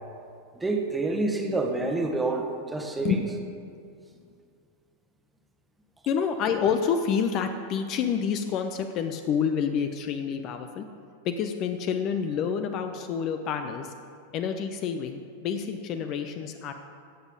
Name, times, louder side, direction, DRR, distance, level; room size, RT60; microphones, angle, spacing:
voice 1, 0.5-3.2, right 2 dB, 10° right, 3 dB, 1.3 m, -28 dB
voice 2, 6.1-10.9 11.2-13.9 14.3-16.7, left 7 dB, 35° left, 7 dB, 0.7 m, -28 dB
14.5 x 8.1 x 5.2 m, 2.3 s
figure-of-eight pair, 90°, 0 cm